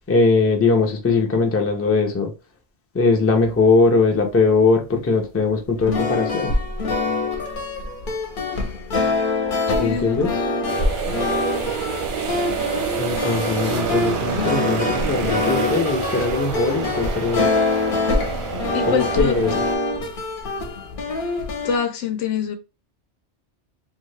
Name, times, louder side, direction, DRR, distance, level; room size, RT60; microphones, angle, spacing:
voice 1, 0.1-2.3 2.9-6.5 9.8-10.3 13.0-17.5 18.9-19.6, left 4 dB, 20° left, 0.4 m, -20 dB
sound 1, 5.8-21.8, left 3 dB, 50° left, 0.8 m, -25 dB
voice 2, 9.8-10.7 18.7-19.4 21.6-22.6, left 6 dB, 80° left, 0.9 m, -25 dB
sound 2, 10.7-19.7, right 6 dB, 55° right, 0.7 m, -27 dB
2.6 x 2.4 x 3.2 m
omnidirectional pair, 1.2 m